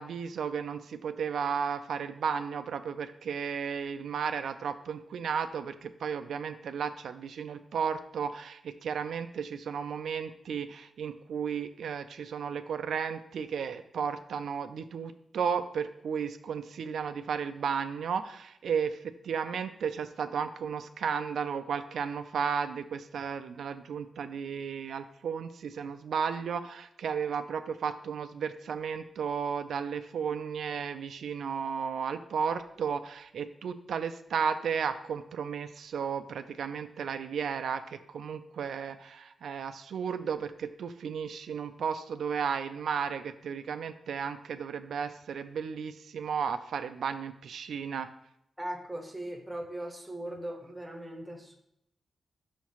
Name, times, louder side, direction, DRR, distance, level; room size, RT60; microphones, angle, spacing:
voice 1, 0.0-19.0 19.2-48.1, right 6 dB, 90° right, 9 dB, 0.3 m, -34 dB
voice 2, 48.6-51.6, right 1 dB, 5° right, 2 dB, 0.9 m, -39 dB
5.6 x 3.1 x 5.5 m, 0.78 s
wide cardioid pair, 140°, 0 cm